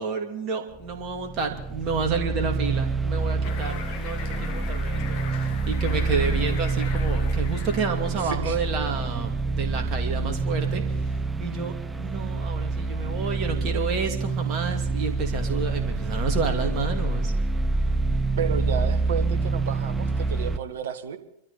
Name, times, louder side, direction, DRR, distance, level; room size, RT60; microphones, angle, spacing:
voice 1, 0.0-10.8 11.4-17.3, right 5 dB, 40° right, 3 dB, 2.7 m, -30 dB
sound 1, 0.7-20.6, right 3 dB, 10° right, 0.8 m, -27 dB
sound 2, 3.4-8.5, left 7 dB, 50° left, 1.8 m, -40 dB
voice 2, 8.2-8.6 18.4-21.2, right 8 dB, 60° right, 10 dB, 1.4 m, -32 dB
25.5 x 13.0 x 4.2 m, 0.81 s
figure-of-eight pair, 90°, 0 cm